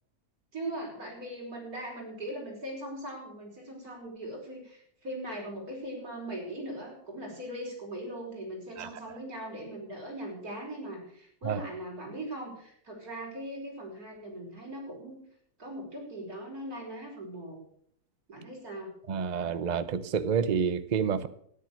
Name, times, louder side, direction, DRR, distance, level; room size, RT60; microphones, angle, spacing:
voice 1, 0.5-15.2 15.6-17.6 18.3-18.9, right 1 dB, 70° right, 5.5 m, -40 dB
voice 2, 19.1-21.3, right 7 dB, 40° right, 0.7 m, -28 dB
13.5 x 10.5 x 6.4 m
omnidirectional pair, 1.6 m